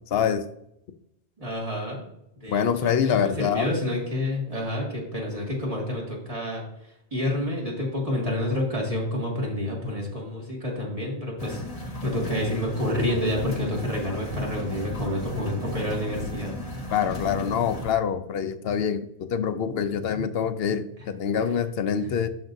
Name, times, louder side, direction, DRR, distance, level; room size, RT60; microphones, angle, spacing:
voice 1, 0.1-0.5 2.5-3.7 16.9-22.3, left 7 dB, 70° left, 11 dB, 0.8 m, -25 dB
voice 2, 1.4-2.0 2.4-6.6 7.1-16.6 20.1-20.2 21.0-21.1 22.0-22.1, left 1 dB, 30° right, -3 dB, 2.3 m, -29 dB
sound 1, 11.4-17.9, left 1 dB, 35° left, 1.1 m, -35 dB
12.0 x 5.2 x 2.7 m, 0.79 s
omnidirectional pair, 1.1 m